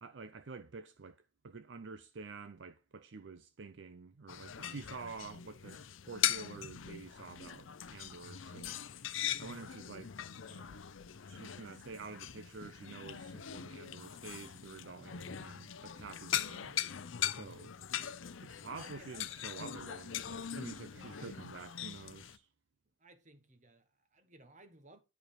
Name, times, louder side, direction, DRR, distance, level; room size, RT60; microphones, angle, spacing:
voice 1, 0.0-5.8 6.1-8.8 9.4-10.2 10.5-10.8 11.3-16.7 17.3-17.7 18.4-22.5, right 4 dB, 65° right, 0.6 m, -49 dB
sound 1, 4.3-22.4, left 10 dB, 80° left, 0.6 m, -41 dB
voice 2, 18.7-19.4 20.9-21.4 23.0-25.0, right 2 dB, 40° right, 1.3 m, -59 dB
10.5 x 5.1 x 4.6 m
head